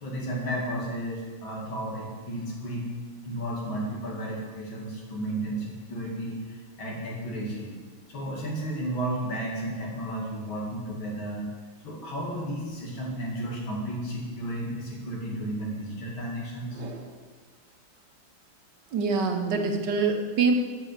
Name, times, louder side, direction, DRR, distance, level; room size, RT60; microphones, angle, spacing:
voice 1, 0.0-2.9 3.2-7.8 8.1-11.5 11.8-16.9, right 1 dB, 80° left, -3 dB, 3.0 m, -33 dB
voice 2, 16.7-17.2 18.9-20.5, right 4 dB, 65° right, 3 dB, 1.5 m, -26 dB
7.4 x 6.9 x 7.1 m, 1.4 s
omnidirectional pair, 2.2 m